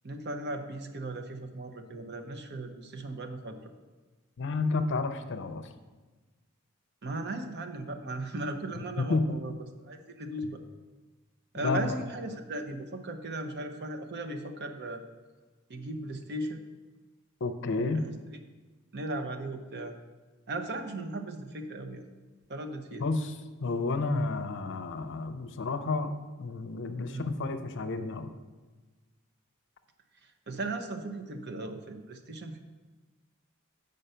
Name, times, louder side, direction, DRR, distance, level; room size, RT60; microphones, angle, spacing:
voice 1, 0.0-3.6 7.0-9.5 9.8-10.6 11.5-15.0 15.7-16.6 17.7-18.1 18.9-19.9 20.5-22.1 22.5-23.0 27.0-27.3 30.5-32.6, right 2 dB, 50° right, 6 dB, 0.8 m, -37 dB
voice 2, 4.4-5.7 8.7-9.3 11.6-12.0 17.4-18.1 23.0-28.3, left 3 dB, 60° left, 8 dB, 0.6 m, -31 dB
7.8 x 5.3 x 5.5 m, 1.3 s
head